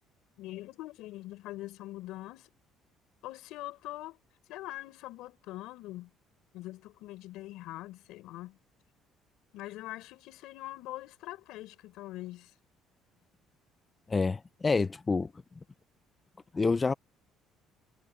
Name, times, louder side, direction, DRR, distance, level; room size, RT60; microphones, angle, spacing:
voice 1, 0.4-2.5 3.2-4.2 4.5-6.1 6.5-8.6 9.5-12.5, left 17 dB, 80° left, 6.1 m, -43 dB
voice 2, 14.1-15.3 16.5-16.9, left 4 dB, 20° left, 0.4 m, -27 dB
cardioid pair, 150°, 0 cm